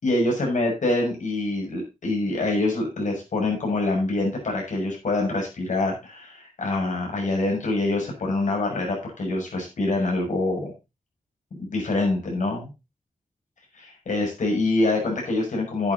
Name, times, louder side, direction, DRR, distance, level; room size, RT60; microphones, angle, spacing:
voice 1, 0.0-10.7 11.6-12.7 13.7-15.9, left 2 dB, 70° left, 0 dB, 6.9 m, -25 dB
10.5 x 9.0 x 4.2 m, 0.27 s
wide cardioid pair, 120°, 13 cm